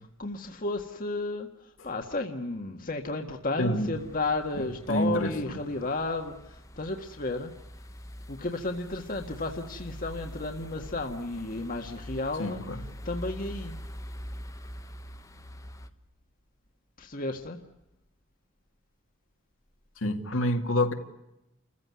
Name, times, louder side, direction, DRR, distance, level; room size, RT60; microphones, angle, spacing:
voice 1, 0.2-1.5 1.8-6.3 6.8-7.5 8.3-12.6 13.0-13.8 17.0-17.6, left 2 dB, 40° left, 1.7 m, -32 dB
voice 2, 3.6-3.9 4.6-5.6 12.4-12.8 20.0-20.9, left 1 dB, 75° left, 2.6 m, -28 dB
sound 1, 3.9-15.9, left 1 dB, 15° left, 1.2 m, -44 dB
29.5 x 15.5 x 9.7 m
head